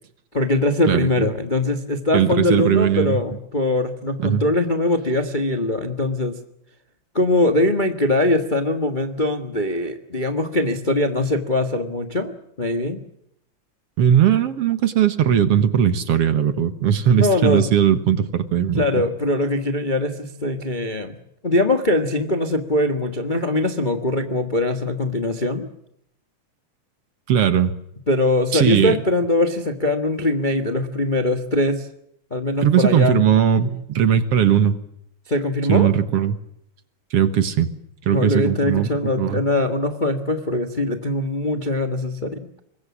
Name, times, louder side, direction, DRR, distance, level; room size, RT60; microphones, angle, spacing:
voice 1, 0.3-6.4 7.1-13.0 17.2-17.7 18.7-21.2 21.4-25.7 28.1-31.9 32.3-33.2 35.3-35.9 38.1-42.5, left 2 dB, 25° left, 7 dB, 1.0 m, -22 dB
voice 2, 0.9-1.3 2.1-3.2 4.2-4.4 14.0-19.0 27.3-27.7 28.5-29.0 32.6-34.8 35.7-36.4 37.1-37.7 38.0-38.9 39.2-39.4, right 9 dB, 60° right, 12 dB, 2.2 m, -18 dB
25.0 x 21.5 x 7.3 m, 0.75 s
omnidirectional pair, 3.3 m